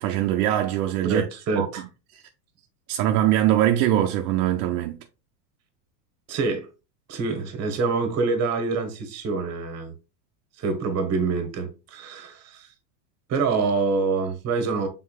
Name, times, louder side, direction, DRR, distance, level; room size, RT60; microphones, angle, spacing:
voice 1, 0.0-1.2 1.6-1.7 2.1-2.2 2.9-5.0, right 12 dB, 65° right, 0.7 m, -22 dB
voice 2, 1.0-1.8 6.3-6.7 7.1-9.9 10.6-12.7 13.3-14.9, right 4 dB, 35° right, 1.2 m, -26 dB
5.7 x 3.9 x 2.3 m
supercardioid pair, 135°, 48 cm